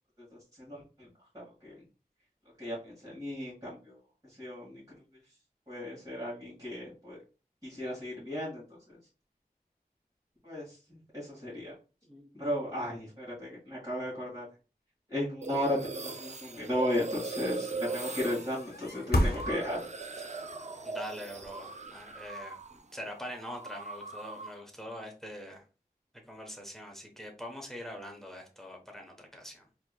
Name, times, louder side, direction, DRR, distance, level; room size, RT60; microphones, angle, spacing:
voice 1, 1.3-1.8 2.6-3.9 4.4-4.8 5.7-7.2 7.6-8.6 10.4-10.8 11.1-11.7 12.3-14.5 15.1-19.8, left 1 dB, 25° right, -8 dB, 1.7 m, -35 dB
sound 1, 15.4-22.8 23.1-24.6, right 3 dB, 45° right, 0.4 m, -40 dB
voice 2, 17.9-18.2 20.8-25.6 26.3-29.6, equal, ahead, 2 dB, 0.9 m, -44 dB
sound 2, 18.0-20.2 21.3-22.8, left 1 dB, 90° left, 0.6 m, -32 dB
4.4 x 2.8 x 2.2 m, 0.34 s
wide cardioid pair, 45°, 16 cm